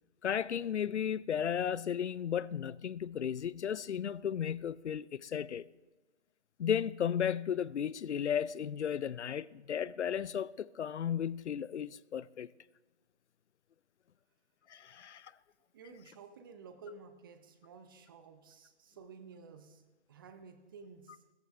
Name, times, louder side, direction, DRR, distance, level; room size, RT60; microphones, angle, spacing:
voice 1, 0.2-5.6 6.6-12.5 14.7-15.3, left 8 dB, 75° left, 0.5 m, -34 dB
voice 2, 15.7-19.8 20.1-21.2, right 4 dB, 20° right, 0.6 m, -53 dB
18.0 x 14.0 x 3.5 m
figure-of-eight pair, 145°, 35 cm